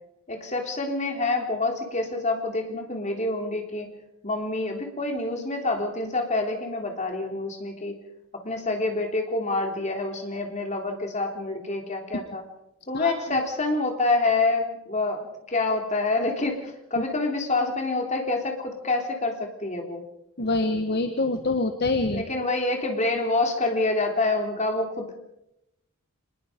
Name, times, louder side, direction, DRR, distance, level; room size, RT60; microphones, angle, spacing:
voice 1, 0.3-3.9 4.2-8.0 8.3-12.4 12.9-15.2 15.5-20.0 22.1-25.2, left 2 dB, 30° left, 3 dB, 3.5 m, -27 dB
voice 2, 12.9-13.4 16.9-17.0 20.4-22.2, left 2 dB, 50° left, 7 dB, 1.3 m, -26 dB
25.0 x 21.0 x 5.2 m, 0.85 s
head